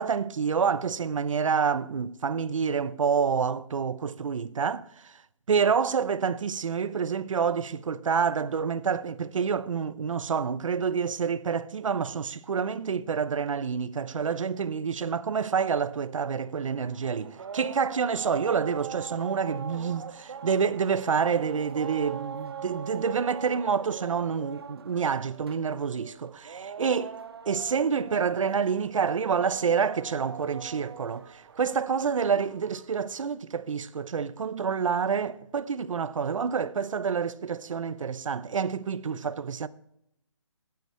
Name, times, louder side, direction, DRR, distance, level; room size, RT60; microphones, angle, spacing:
voice 1, 0.0-5.1 5.5-27.1 27.5-39.7, right 6 dB, 80° right, 0.7 m, -28 dB
sound 1, 16.6-33.0, right 6 dB, 50° right, 0.8 m, -42 dB
16.0 x 9.4 x 3.1 m
hypercardioid pair, 175°, 16 cm